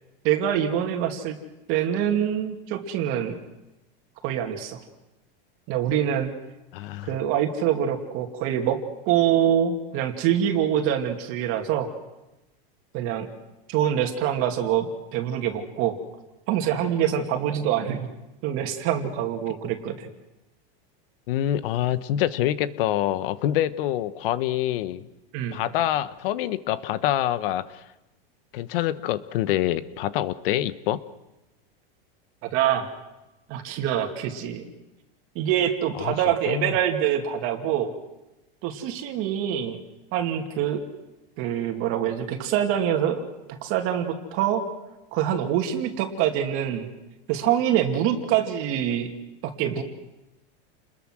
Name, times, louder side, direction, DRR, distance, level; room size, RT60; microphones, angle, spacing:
voice 1, 0.2-1.4 1.7-3.4 4.2-4.8 5.7-6.3 7.1-8.8 9.1-11.9 12.9-13.3 13.7-16.0 16.5-18.1 18.4-20.1 25.3-25.6 32.4-32.9 33.5-34.7 35.3-37.9 38.6-39.8 40.1-40.8 41.4-44.6 45.1-46.9 47.3-49.1 49.4-49.8, right 10 dB, 45° right, 4 dB, 2.5 m, -25 dB
voice 2, 6.7-7.1 21.3-25.1 25.5-27.8 28.5-31.0 36.0-36.1 36.5-36.8, left 12 dB, 65° left, 14 dB, 1.3 m, -26 dB
29.5 x 21.5 x 6.3 m, 0.99 s
supercardioid pair, 145°, 29 cm